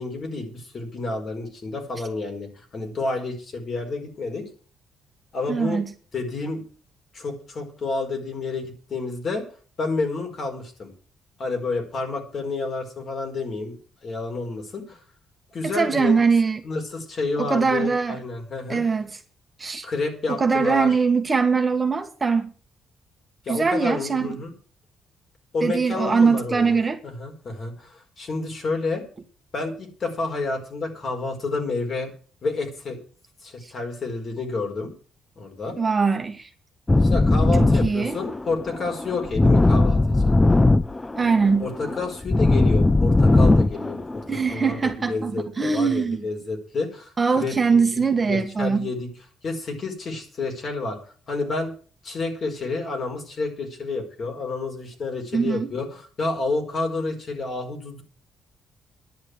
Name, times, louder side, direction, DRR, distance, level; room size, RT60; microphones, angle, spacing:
voice 1, 0.0-4.5 5.3-5.8 6.1-6.6 7.1-9.4 9.8-10.9 11.4-13.8 14.0-15.0 15.5-16.2 16.6-18.8 19.8-20.9 23.4-24.5 25.5-29.0 29.5-32.1 32.4-33.0 33.4-34.9 35.4-35.8 37.0-40.3 41.6-44.2 44.5-49.1 49.4-51.0 51.3-51.7 52.0-58.0, left 3 dB, 50° left, 4.6 m, -30 dB
voice 2, 5.5-5.9 15.6-16.6 17.4-18.2 18.7-19.1 19.6-19.9 20.3-22.5 23.5-24.4 25.6-27.0 33.6-33.7 35.8-36.5 37.4-38.2 41.1-41.7 44.3-46.2 47.2-48.9 55.3-55.7, right 5 dB, 30° right, 1.7 m, -22 dB
sound 1, 36.9-44.9, left 2 dB, 20° left, 0.5 m, -19 dB
10.5 x 7.3 x 9.6 m
cardioid pair, 90°, 0 cm